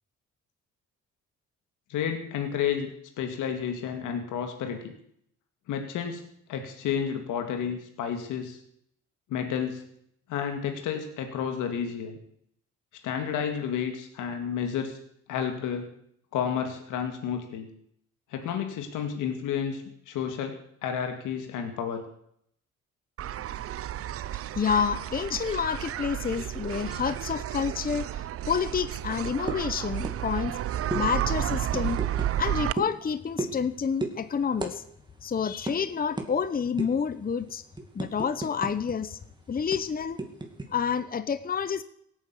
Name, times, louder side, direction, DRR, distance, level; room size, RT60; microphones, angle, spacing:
voice 1, 1.9-2.9 3.2-4.9 5.7-6.2 6.5-8.6 9.3-9.8 10.3-12.2 13.0-15.0 15.3-15.9 16.3-17.7 18.3-22.0, left 8 dB, 90° left, 5 dB, 2.2 m, -31 dB
sound 1, 23.2-32.7, right 12 dB, 50° right, 0.5 m, -32 dB
voice 2, 24.5-30.6 30.9-32.0 32.3-34.8 35.2-37.6 37.9-39.2 39.5-40.2 40.7-41.8, left 6 dB, 30° left, 13 dB, 0.9 m, -29 dB
sound 2, 29.5-29.7 30.0-30.2 30.4-30.6 30.9-31.0 31.7-32.3 32.8-33.0 33.4-33.7 34.0-34.2 34.6-34.7 35.0-35.2 35.7-35.8 36.2-36.3 36.8-37.0 37.5-38.9 39.2-39.3 39.7-40.7, right 2 dB, 15° right, 2.7 m, -33 dB
17.0 x 9.1 x 8.4 m, 0.70 s
cardioid pair, 90°, 30 cm